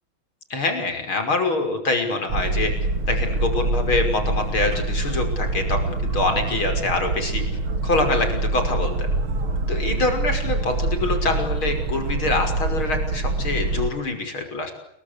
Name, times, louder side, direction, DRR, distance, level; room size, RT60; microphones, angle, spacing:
voice 1, 0.5-2.7 3.1-7.4 7.8-9.1 9.7-14.7, left 2 dB, 85° left, 6 dB, 6.6 m, -25 dB
Boat Water vehicle, 2.3-13.9, right 2 dB, 80° right, 3.1 m, -25 dB
29.5 x 23.5 x 8.5 m, 0.78 s
omnidirectional pair, 2.2 m